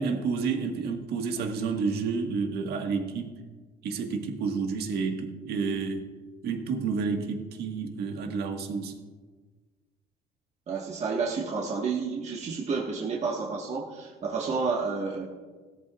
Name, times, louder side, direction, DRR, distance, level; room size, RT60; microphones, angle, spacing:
voice 1, 0.0-3.3 3.8-6.1 6.4-9.0, right 5 dB, 70° right, 3 dB, 1.6 m, -30 dB
voice 2, 10.7-15.2, right 4 dB, 40° right, -2 dB, 1.5 m, -30 dB
17.5 x 13.5 x 2.5 m, 1.4 s
cardioid pair, 110°, 17 cm